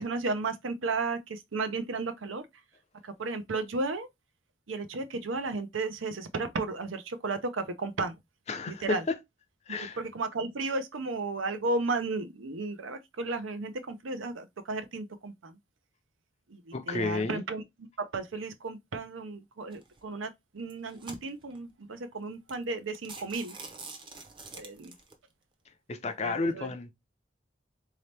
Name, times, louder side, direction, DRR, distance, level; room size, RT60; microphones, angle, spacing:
voice 1, 0.0-2.4 3.0-4.1 4.7-8.2 8.7-9.0 9.7-15.6 16.5-23.6 24.5-24.9 26.2-26.7, right 3 dB, 80° right, 0.6 m, -34 dB
voice 2, 8.5-9.2 9.7-10.0 16.7-17.4 25.9-26.9, left 3 dB, 35° left, 0.5 m, -31 dB
sound 1, 19.7-20.0 20.6-21.6 22.1-22.2 22.5-22.6 22.9-25.1, right 3 dB, 25° right, 0.7 m, -45 dB
4.0 x 2.8 x 3.3 m
head